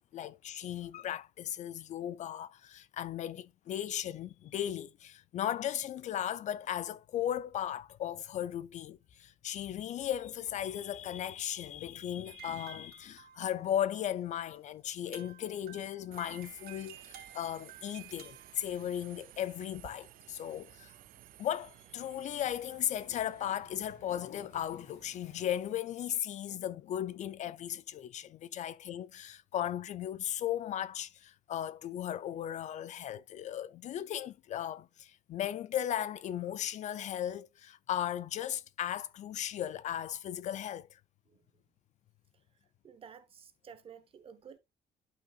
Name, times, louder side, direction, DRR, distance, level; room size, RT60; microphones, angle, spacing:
voice 1, 0.1-20.9 21.4-41.0, left 11 dB, 50° left, 0.4 m, -36 dB
sound 1, 9.1-14.7, left 5 dB, 75° left, 2.2 m, -67 dB
sound 2, 12.2-14.0 14.5-14.6 14.9-18.7, right 10 dB, 85° right, 2.3 m, -53 dB
Subway metro underground, 16.1-25.6, right 14 dB, 65° right, 0.5 m, -55 dB
voice 2, 42.8-44.6, right 7 dB, 35° right, 1.0 m, -52 dB
11.5 x 5.6 x 2.4 m
cardioid pair, 170°, 16 cm